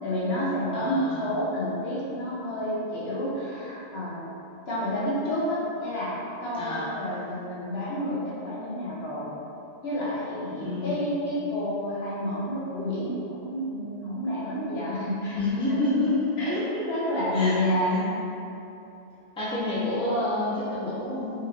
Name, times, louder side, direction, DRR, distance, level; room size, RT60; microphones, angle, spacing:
voice 1, 0.0-4.2 4.7-9.3 9.8-15.8 16.4-16.5 16.9-18.2, left 1 dB, 75° left, -7 dB, 1.1 m, -29 dB
voice 2, 0.7-1.3 6.5-6.9 10.6-11.1 15.3-16.8 17.3-17.6 17.9-18.0 19.4-21.3, left 2 dB, 5° left, -9 dB, 0.6 m, -28 dB
3.7 x 3.0 x 2.9 m, 2.8 s
omnidirectional pair, 1.1 m